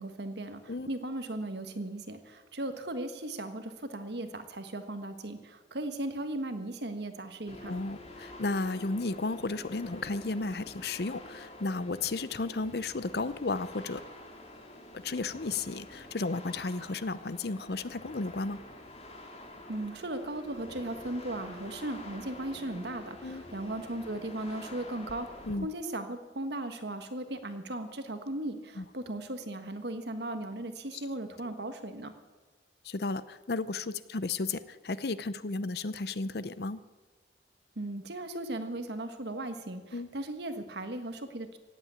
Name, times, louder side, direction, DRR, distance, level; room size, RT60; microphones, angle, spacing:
voice 1, 0.0-7.7 19.7-32.1 37.7-41.6, right 1 dB, 65° right, 8 dB, 1.5 m, -37 dB
sound 1, 7.5-25.5, left 1 dB, 35° left, 2.0 m, -47 dB
voice 2, 7.7-14.0 14.9-18.6 23.2-23.4 25.4-25.7 28.8-28.9 30.9-31.0 32.8-36.8 39.9-40.1, left 3 dB, 60° left, 16 dB, 0.7 m, -33 dB
16.5 x 8.7 x 8.8 m, 1.2 s
head